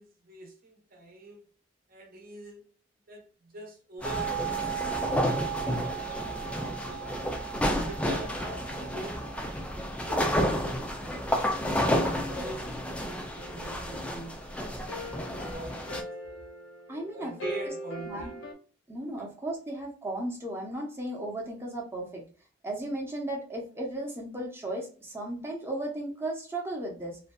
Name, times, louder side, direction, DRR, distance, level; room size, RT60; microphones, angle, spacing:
voice 1, 0.0-1.4 1.9-2.6 3.1-7.3 7.8-10.3 10.7-11.0 11.7-14.4 15.5-15.9 16.3-16.4 17.1-18.3 19.2-19.3, right 2 dB, 50° right, 1 dB, 0.8 m, -44 dB
sound 1, 4.0-15.5, right 9 dB, 35° left, 0.7 m, -39 dB
sound 2, 4.0-16.0, equal, 5° left, 0.3 m, -31 dB
sound 3, 13.4-18.5, equal, 75° left, 0.6 m, -41 dB
voice 2, 16.9-17.3 18.1-18.4 18.9-22.2 22.6-27.2, right 1 dB, 15° right, -1 dB, 0.8 m, -35 dB
2.6 x 2.2 x 2.2 m, 0.40 s
head